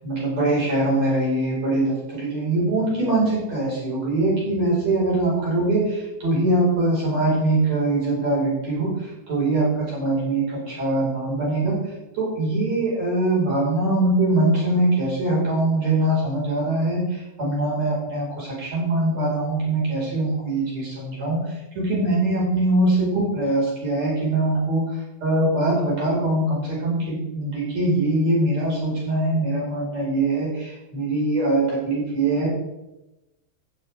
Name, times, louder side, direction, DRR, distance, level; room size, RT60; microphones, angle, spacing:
voice 1, 0.0-11.8 12.1-21.4 21.7-24.9 25.2-32.5, right 2 dB, 35° right, -6 dB, 6.0 m, -22 dB
15.0 x 9.0 x 3.6 m, 0.95 s
omnidirectional pair, 5.4 m